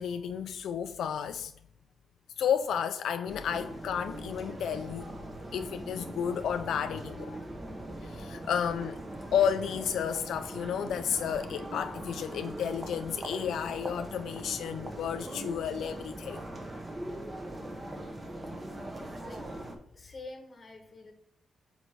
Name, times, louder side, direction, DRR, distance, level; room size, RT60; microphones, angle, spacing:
voice 1, 0.0-1.5 2.4-5.1 5.5-7.4 8.0-9.0 9.3-16.4 17.1-17.2 17.9-18.1, left 8 dB, 90° left, 0.3 m, -32 dB
sound 1, 3.2-19.8, right 1 dB, 20° right, 0.8 m, -41 dB
voice 2, 19.9-21.1, left 2 dB, 30° left, 1.1 m, -46 dB
5.1 x 4.2 x 4.7 m
wide cardioid pair, 135°, 0 cm